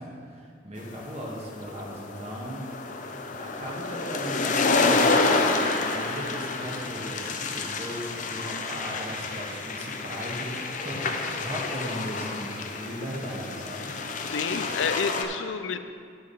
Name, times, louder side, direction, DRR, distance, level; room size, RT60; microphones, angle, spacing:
voice 1, 0.0-2.7 3.0-3.1 3.4-5.4 5.9-14.3, equal, 35° right, -3 dB, 1.7 m, -37 dB
sound 1, 1.0-15.2, left 3 dB, 45° left, 0.7 m, -29 dB
voice 2, 14.3-15.8, left 5 dB, 85° left, 10 dB, 0.5 m, -29 dB
10.5 x 7.5 x 4.1 m, 2.2 s
head